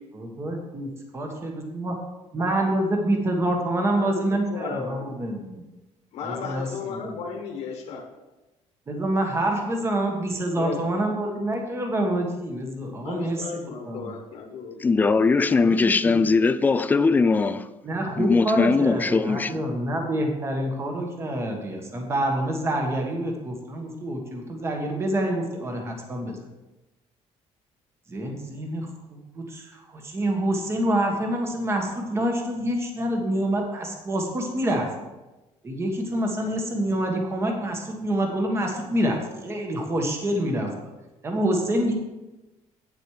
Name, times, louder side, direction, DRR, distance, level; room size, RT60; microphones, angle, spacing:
voice 1, 0.1-2.0 2.3-5.6 6.2-7.2 8.9-14.1 15.5-16.2 17.8-26.4 28.1-34.9 35.6-40.7 41.2-41.9, right 1 dB, 20° right, 1.4 m, -27 dB
voice 2, 3.8-5.1 6.1-8.0 10.5-11.1 13.0-14.9, left 5 dB, 60° left, 1.4 m, -35 dB
voice 3, 14.8-17.7 18.2-19.6, left 4 dB, 15° left, 0.3 m, -20 dB
8.9 x 7.8 x 4.8 m
cardioid pair, 170°, 13 cm